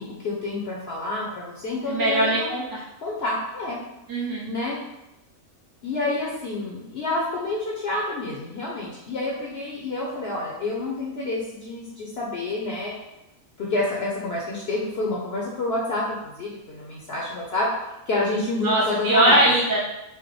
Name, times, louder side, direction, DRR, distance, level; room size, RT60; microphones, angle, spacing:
voice 1, 0.0-2.5 3.0-3.8 4.5-4.8 5.8-12.9 13.6-17.7 18.1-19.5, left 2 dB, 60° left, -3 dB, 0.7 m, -28 dB
voice 2, 1.9-2.8 4.1-4.5 18.6-19.8, right 1 dB, 35° right, -5 dB, 0.3 m, -21 dB
4.5 x 2.1 x 3.2 m, 0.92 s
omnidirectional pair, 1.5 m